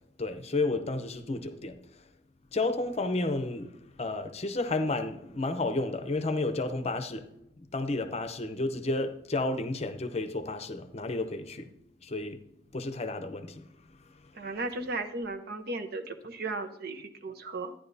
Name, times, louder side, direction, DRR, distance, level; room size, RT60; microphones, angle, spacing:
voice 1, 0.2-1.8 2.5-3.7 4.0-7.3 7.7-11.7 12.0-12.4 12.7-13.6, left 2 dB, 35° left, 0.7 m, -31 dB
voice 2, 14.3-17.7, right 2 dB, 55° right, 0.9 m, -35 dB
11.5 x 10.0 x 2.7 m
head